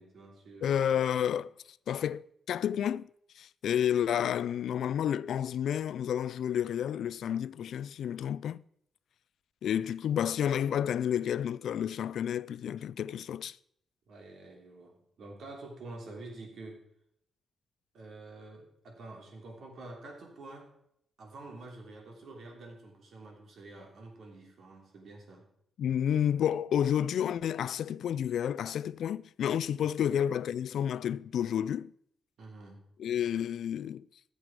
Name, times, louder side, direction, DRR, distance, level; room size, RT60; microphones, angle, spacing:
voice 1, 0.0-1.0 14.1-16.8 17.9-20.7 21.2-25.5 29.8-30.2 32.4-32.9, right 2 dB, 65° right, 3.2 m, -48 dB
voice 2, 0.6-1.5 1.9-3.1 3.4-8.6 9.6-13.6 25.8-31.9 33.0-34.1, left 9 dB, 80° left, 0.3 m, -30 dB
14.0 x 7.7 x 4.8 m
cardioid pair, 120°, 0 cm